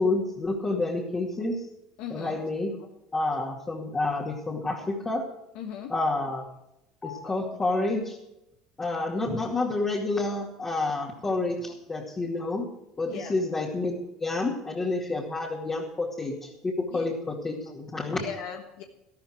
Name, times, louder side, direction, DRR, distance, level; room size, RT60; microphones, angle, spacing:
voice 1, 0.0-1.6 2.1-2.7 3.1-5.3 5.9-6.4 7.0-8.2 8.8-12.7 13.0-16.4 16.6-18.3, left 2 dB, 25° left, -4 dB, 2.4 m, -29 dB
voice 2, 2.0-2.4 5.5-5.9 13.1-13.3 16.9-17.0 18.2-18.8, left 8 dB, 70° left, 3 dB, 1.3 m, -37 dB
12.5 x 12.5 x 4.7 m, 0.84 s
supercardioid pair, 95°, 2 cm